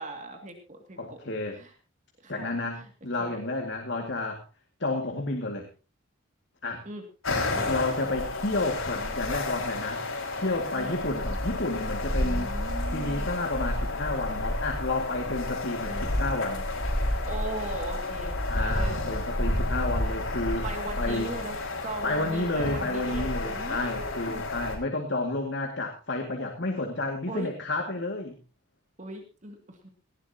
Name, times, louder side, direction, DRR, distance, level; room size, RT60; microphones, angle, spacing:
voice 1, 0.0-1.2 1.5-1.7 2.2-2.9 3.2-3.4 6.9-7.8 10.7-11.0 12.2-13.5 15.8-16.2 17.3-19.0 20.6-24.4 27.3-27.5 29.0-29.9, right 2 dB, 35° right, 3 dB, 2.3 m, -39 dB
voice 2, 1.0-1.6 2.3-4.4 4.8-5.7 6.6-6.9 7.7-10.0 10.3-12.6 12.9-16.7 18.5-20.7 21.0-21.3 22.0-28.4, left 2 dB, 55° left, 3 dB, 2.2 m, -31 dB
sound 1, 7.2-24.8, left 2 dB, 85° left, 5.0 m, -30 dB
19.0 x 15.5 x 2.9 m, 0.31 s
head